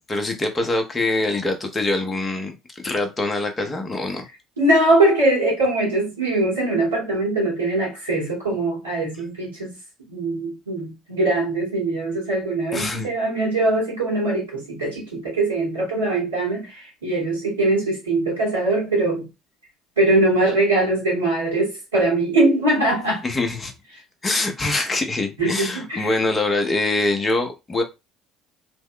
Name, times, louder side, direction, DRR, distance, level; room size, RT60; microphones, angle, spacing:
voice 1, 0.1-4.2 12.7-13.1 23.2-23.7 24.2-27.8, left 2 dB, 25° left, 0.9 m, -24 dB
voice 2, 4.6-9.8 10.1-19.3 20.0-23.2 25.4-26.2, right 2 dB, 85° right, 1.3 m, -21 dB
3.0 x 2.1 x 3.7 m
hypercardioid pair, 60°, 0 cm